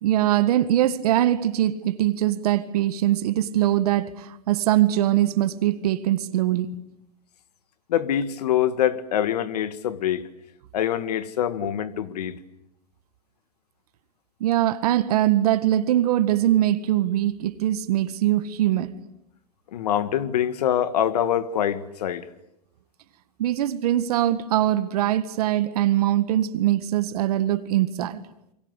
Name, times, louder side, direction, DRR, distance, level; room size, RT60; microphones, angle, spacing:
voice 1, 0.0-6.7 14.4-18.9 23.4-28.2, right 13 dB, 70° right, 1.7 m, -22 dB
voice 2, 7.9-10.3 10.7-12.4 19.7-22.3, left 10 dB, 80° left, 1.8 m, -24 dB
29.0 x 23.0 x 8.2 m
supercardioid pair, 135°, 20 cm